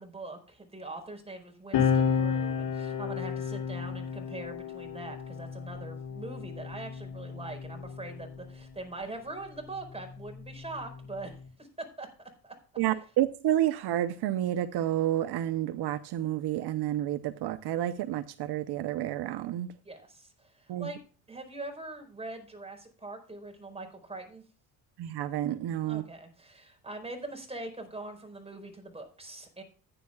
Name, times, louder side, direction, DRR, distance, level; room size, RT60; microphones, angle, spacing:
voice 1, 0.0-12.1 12.4-12.6 19.8-21.0 21.3-24.4 25.8-29.6, right 2 dB, 15° right, 4.6 m, -42 dB
sound 1, 1.7-8.7 9.6-11.5, left 7 dB, 80° left, 4.7 m, -32 dB
voice 2, 12.8-19.7 20.7-20.9 25.0-26.0, right 12 dB, 75° right, 0.8 m, -30 dB
15.0 x 9.8 x 2.3 m
cardioid pair, 80°, 40 cm